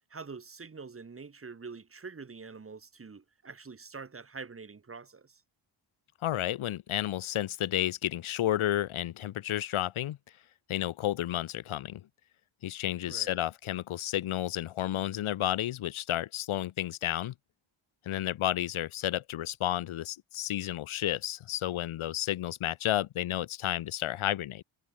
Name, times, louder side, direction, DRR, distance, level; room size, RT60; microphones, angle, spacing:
voice 1, 0.1-5.4 13.1-13.4, right 4 dB, 25° right, 2.3 m, -45 dB
voice 2, 6.2-10.2 10.7-12.0 12.6-17.3 18.1-24.6, left 13 dB, 85° left, 1.2 m, -31 dB
wide cardioid pair, 145°, 48 cm